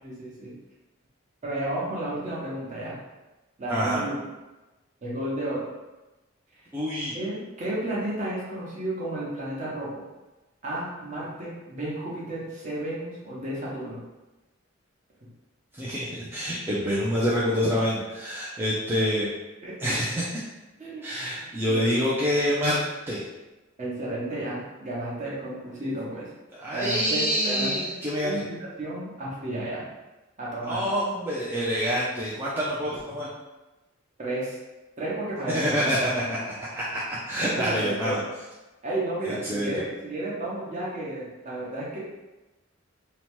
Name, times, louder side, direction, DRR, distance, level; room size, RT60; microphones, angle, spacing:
voice 1, 0.0-0.5 1.4-3.0 3.6-4.2 5.0-5.7 7.1-10.0 10.6-14.0 19.6-19.7 20.8-21.0 21.7-21.9 23.8-26.3 26.7-27.9 28.2-28.5 28.8-29.8 30.4-30.8 34.2-34.6 35.0-35.9 37.4-38.2 38.8-42.0, right 1 dB, 40° right, -6 dB, 0.8 m, -32 dB
voice 2, 3.7-4.0 6.7-7.1 15.7-19.3 19.8-20.3 21.0-22.8 23.1-23.2 26.5-28.4 30.6-33.3 35.5-38.2 39.2-39.8, equal, 10° right, -8 dB, 0.4 m, -27 dB
2.8 x 2.1 x 3.0 m, 1.1 s
head